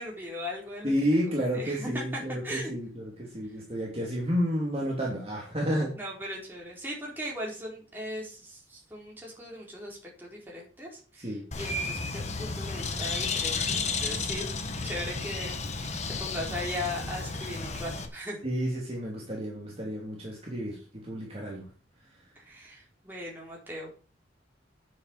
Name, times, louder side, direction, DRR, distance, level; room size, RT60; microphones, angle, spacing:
voice 1, 0.0-0.9 1.5-2.7 6.0-14.5 14.8-18.4 22.4-23.9, left 1 dB, 10° right, -3 dB, 4.4 m, -38 dB
voice 2, 0.8-5.9 11.2-11.4 18.4-21.6, equal, 35° right, -3 dB, 2.9 m, -31 dB
Bird, 11.5-18.1, left 4 dB, 35° left, 1.4 m, -32 dB
8.2 x 7.5 x 7.3 m, 0.38 s
head